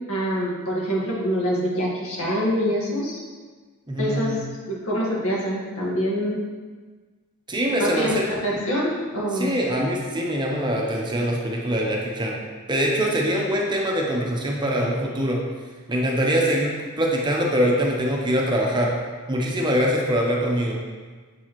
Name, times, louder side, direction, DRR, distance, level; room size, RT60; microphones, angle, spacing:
voice 1, 0.1-3.2 4.0-4.4 4.7-6.4 7.8-9.5, equal, 65° left, -4 dB, 1.5 m, -25 dB
voice 2, 3.9-4.4 7.5-8.2 9.3-12.4 12.7-15.4 15.9-16.7 17.0-18.9 19.3-20.8, equal, 20° right, -2 dB, 0.8 m, -23 dB
7.1 x 4.6 x 3.0 m, 1.4 s
head